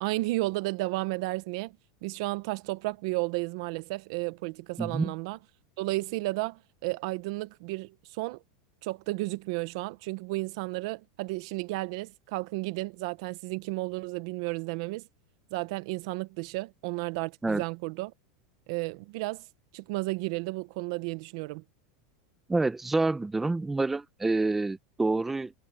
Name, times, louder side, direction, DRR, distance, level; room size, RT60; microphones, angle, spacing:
voice 1, 0.0-5.4 5.8-8.4 8.8-15.1 15.5-18.1 18.7-19.5 19.7-21.6, right 22 dB, 50° right, 0.9 m, -33 dB
voice 2, 4.8-5.1 17.4-17.6 22.5-25.5, right 3 dB, 5° right, 0.8 m, -27 dB
supercardioid pair, 170°, 4 cm